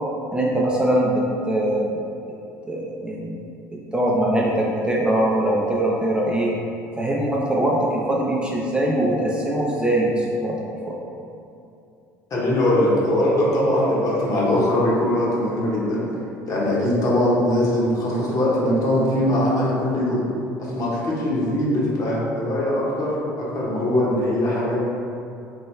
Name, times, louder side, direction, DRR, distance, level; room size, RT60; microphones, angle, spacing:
voice 1, 0.3-1.9 2.7-3.4 3.9-6.5 7.0-10.5 10.8-10.9, right 1 dB, 10° right, -4 dB, 0.5 m, -22 dB
voice 2, 12.3-16.1 16.5-20.2 20.6-24.8, left 1 dB, 45° left, -5 dB, 0.9 m, -21 dB
3.3 x 2.1 x 3.2 m, 2.6 s
hypercardioid pair, 70°, 8 cm